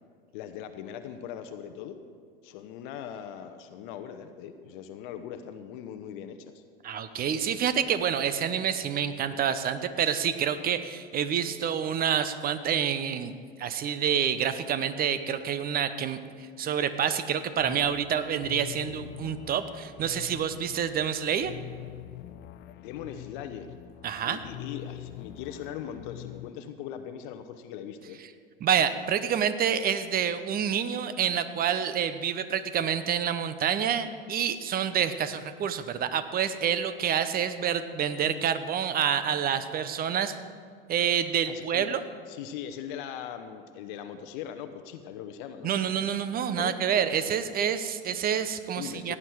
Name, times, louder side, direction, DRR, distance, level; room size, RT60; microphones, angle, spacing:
voice 1, 0.3-2.0 2.4-6.6 22.8-23.7 24.2-28.2 41.5-41.9 42.3-45.8 46.6-46.8 48.8-49.1, left 9 dB, 60° left, 9 dB, 0.9 m, -40 dB
voice 2, 6.8-13.3 13.6-21.5 24.0-24.4 28.6-40.3 40.9-42.0 45.6-49.1, right 8 dB, 30° right, 12 dB, 0.9 m, -28 dB
sound 1, 17.6-26.5, left 14 dB, 40° left, 0.5 m, -44 dB
16.5 x 9.8 x 4.7 m, 2.1 s
hypercardioid pair, 90°, 29 cm